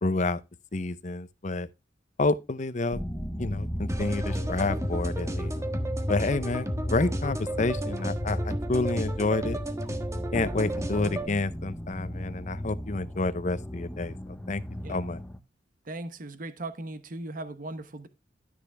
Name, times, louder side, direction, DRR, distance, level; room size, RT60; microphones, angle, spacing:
voice 1, 0.0-0.4 0.7-1.7 2.2-3.0 3.4-5.5 6.1-9.6 10.3-14.1 14.5-14.6 14.9-15.2, left 3 dB, 40° left, 0.7 m, -29 dB
sound 1, 2.9-15.4, equal, 5° left, 0.8 m, -34 dB
sound 2, 3.9-11.3, right 1 dB, 15° right, 1.3 m, -34 dB
voice 2, 15.8-18.1, right 2 dB, 45° right, 1.0 m, -38 dB
12.5 x 6.8 x 3.4 m
head